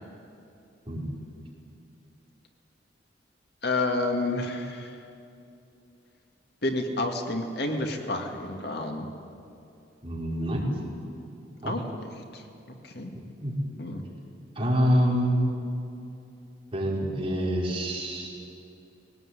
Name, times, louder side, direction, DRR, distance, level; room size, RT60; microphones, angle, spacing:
voice 1, 3.6-4.9 6.6-9.1 11.7-12.4 12.8-13.1 13.8-14.0, left 2 dB, 60° left, 3 dB, 2.1 m, -30 dB
voice 2, 10.0-10.7 11.6-11.7 13.4-13.5 14.5-15.4 16.7-18.3, equal, 30° right, -4 dB, 4.9 m, -26 dB
20.0 x 18.0 x 9.9 m, 2.7 s
head